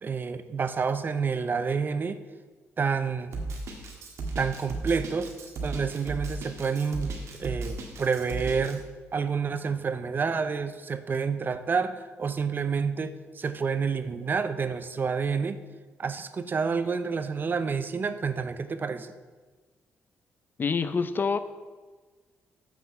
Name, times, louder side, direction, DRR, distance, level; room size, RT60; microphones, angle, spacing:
voice 1, 0.0-2.2 2.8-3.3 4.4-5.3 5.6-8.9 9.1-15.6 16.0-19.1, right 5 dB, 40° right, 11 dB, 0.6 m, -29 dB
Drum kit, 3.3-8.7, right 3 dB, 70° right, 1.6 m, -35 dB
voice 2, 20.6-21.4, left 5 dB, 40° left, 12 dB, 0.5 m, -26 dB
7.5 x 6.0 x 6.6 m, 1.4 s
cardioid pair, 80°, 5 cm